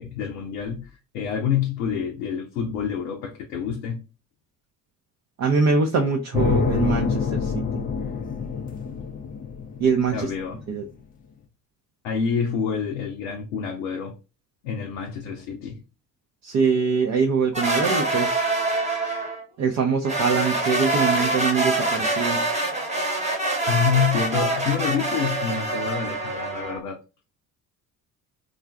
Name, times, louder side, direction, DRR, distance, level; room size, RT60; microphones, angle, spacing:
voice 1, 0.0-4.0 10.1-10.6 12.0-14.2 14.6-15.8 23.7-27.0, left 7 dB, 70° left, 0.6 m, -27 dB
voice 2, 5.4-7.8 9.8-10.3 10.7-10.8 16.4-18.4 19.6-22.4, right 5 dB, 35° right, 0.6 m, -23 dB
sound 1, 6.3-10.5, left 5 dB, 20° left, 0.4 m, -26 dB
sound 2, 17.5-19.4 20.0-26.8, right 2 dB, 15° right, 1.0 m, -25 dB
3.6 x 2.4 x 2.2 m
figure-of-eight pair, 45°, 49 cm